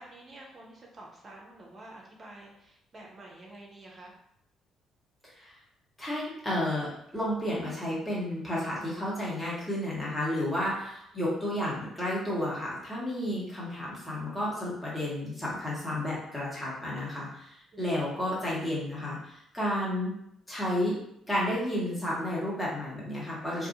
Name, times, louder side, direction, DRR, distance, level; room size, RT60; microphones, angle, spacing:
voice 1, 0.0-4.1 11.1-11.3 17.7-18.1, right 2 dB, 35° right, -2 dB, 0.6 m, -49 dB
voice 2, 6.0-20.1 20.5-21.0 21.3-23.7, left 1 dB, 10° left, -7 dB, 1.1 m, -32 dB
2.3 x 2.3 x 2.8 m, 0.73 s
figure-of-eight pair, 45°, 0 cm